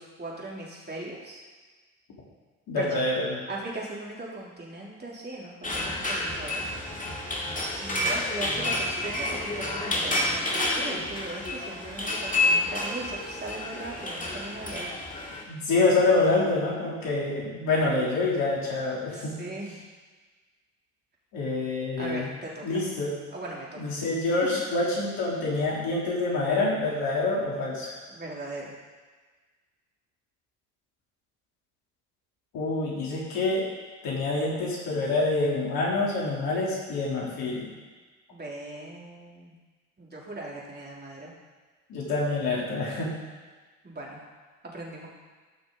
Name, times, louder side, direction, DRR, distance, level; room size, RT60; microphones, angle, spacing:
voice 1, 0.0-1.4 2.8-3.0 3.5-6.6 7.8-14.9 19.1-19.7 22.0-22.8 23.3-23.9 28.1-28.7 38.3-39.5 40.0-41.3 43.8-44.2 44.7-45.1, right 2 dB, 25° right, -4 dB, 3.4 m, -39 dB
voice 2, 2.7-3.4 15.5-19.3 21.3-22.3 22.6-23.1 23.8-27.9 32.5-33.6 34.0-37.7 41.9-43.1, left 3 dB, 60° left, -4 dB, 3.5 m, -26 dB
sound 1, 5.6-15.4, left 1 dB, 20° left, 2.2 m, -29 dB
14.5 x 6.1 x 4.0 m, 1.4 s
hypercardioid pair, 60°, 39 cm